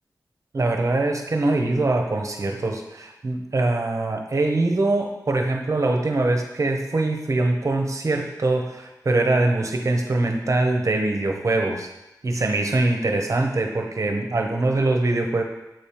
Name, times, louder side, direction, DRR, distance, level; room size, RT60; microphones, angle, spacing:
voice 1, 0.5-11.9 12.2-15.4, right 2 dB, 50° right, 3 dB, 0.9 m, -23 dB
7.6 x 3.4 x 4.4 m, 0.96 s
wide cardioid pair, 75°, 7 cm